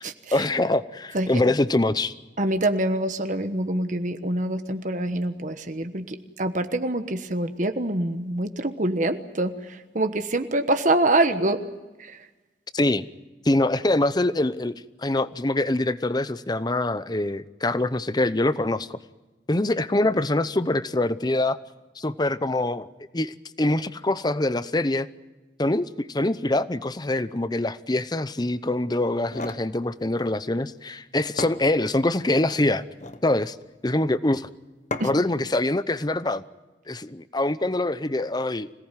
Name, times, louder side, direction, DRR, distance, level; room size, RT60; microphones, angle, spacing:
voice 1, 0.0-2.1 12.7-13.1 13.4-19.0 19.5-21.6 22.0-22.9 23.1-25.1 25.6-32.8 33.2-33.6 33.8-34.5 35.0-36.4 36.9-38.7, left 2 dB, 20° left, 14 dB, 0.7 m, -24 dB
voice 2, 2.4-9.5 9.9-11.6 35.0-35.1, right 1 dB, 45° right, 8 dB, 1.2 m, -25 dB
sound 1, 29.1-29.7 30.9-31.0 31.4-32.2 32.8-33.3 34.9-35.3, left 2 dB, 40° left, 1.4 m, -35 dB
26.0 x 18.0 x 9.1 m, 1.2 s
head